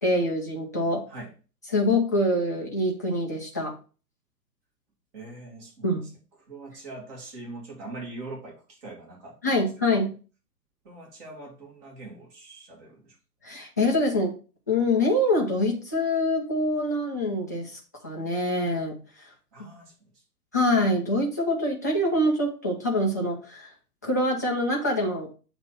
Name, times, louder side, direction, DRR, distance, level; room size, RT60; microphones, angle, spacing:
voice 1, 0.0-1.0 1.7-3.7 5.8-6.1 9.4-10.1 13.4-14.3 14.7-19.3 20.5-23.7 24.0-25.3, left 1 dB, 10° left, -3 dB, 0.4 m, -25 dB
voice 2, 5.1-5.9 6.5-9.6 10.8-13.1 19.5-19.9, right 2 dB, 35° right, -1 dB, 2.4 m, -42 dB
7.4 x 3.0 x 5.6 m, 0.36 s
figure-of-eight pair, 120°, 49 cm